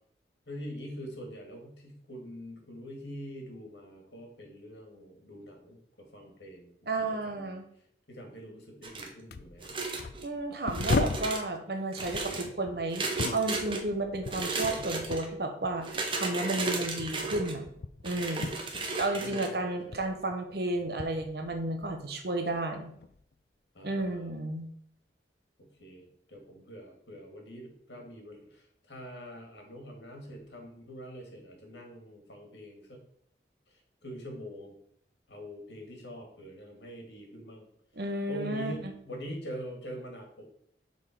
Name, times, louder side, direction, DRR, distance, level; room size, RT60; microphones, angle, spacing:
voice 1, 0.5-7.6 8.1-9.7 18.4-20.1 23.7-24.3 25.6-33.0 34.0-34.8 35.3-37.6 38.3-40.4, equal, 80° left, 1 dB, 2.1 m, -44 dB
voice 2, 6.9-7.7 10.2-13.0 13.3-17.6 18.0-18.5 19.0-22.9 23.8-24.7 38.0-38.9, right 2 dB, 65° right, 5 dB, 1.1 m, -32 dB
sound 1, 8.8-9.2 9.6-10.3 10.7-11.4 11.9-12.5 12.9-13.8 14.2-15.3 15.8-17.5 18.0-19.5, right 3 dB, 30° right, 0.9 m, -34 dB
sound 2, 8.9-9.0 9.3-11.4 12.0-15.4 15.6-19.5 19.7-22.1 22.5-23.2 24.0-24.2, left 3 dB, 60° left, 0.4 m, -37 dB
6.9 x 4.0 x 5.1 m, 0.67 s
head